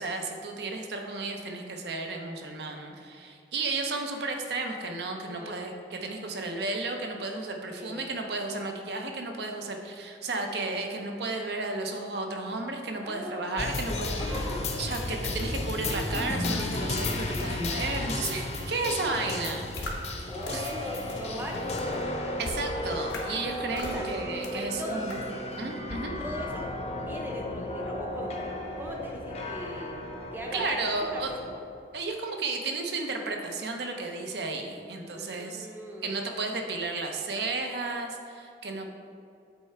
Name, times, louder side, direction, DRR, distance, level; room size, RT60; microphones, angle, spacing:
voice 1, 0.0-14.4 14.8-19.7 20.1-20.2 20.5-20.7 22.4-25.2 25.6-26.1 30.5-31.4 31.9-35.7 36.0-38.9, right 3 dB, 65° right, 3 dB, 0.7 m, -33 dB
voice 2, 5.2-5.6 7.7-8.1 13.0-13.5 14.2-14.6 18.8-18.9 19.3-19.5 20.3-21.8 22.2-22.4 23.9-24.0 24.5-25.2 26.2-30.0 30.3-31.6 35.1-36.1, equal, 10° right, 0 dB, 0.7 m, -39 dB
sound 1, 13.6-31.6, left 2 dB, 35° left, 0.6 m, -34 dB
sound 2, 19.8-19.9 20.4-20.5 21.1-21.2 21.8-21.9 22.4-22.6 23.1-23.2 23.8-24.0 24.4-24.5 25.1-25.2, left 2 dB, 85° left, 1.0 m, -36 dB
8.2 x 3.3 x 4.4 m, 2.4 s
head